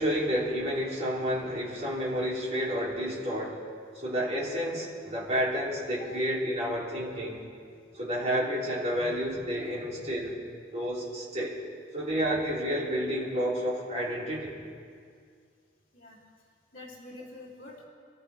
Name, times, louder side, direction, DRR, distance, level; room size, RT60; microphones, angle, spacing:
voice 1, 0.0-3.6 3.9-7.4 7.9-10.4 10.7-11.6 11.9-14.6, equal, 35° right, -5 dB, 3.1 m, -30 dB
voice 2, 16.7-17.8, left 2 dB, 50° left, -8 dB, 3.3 m, -47 dB
25.5 x 13.5 x 3.5 m, 2.2 s
head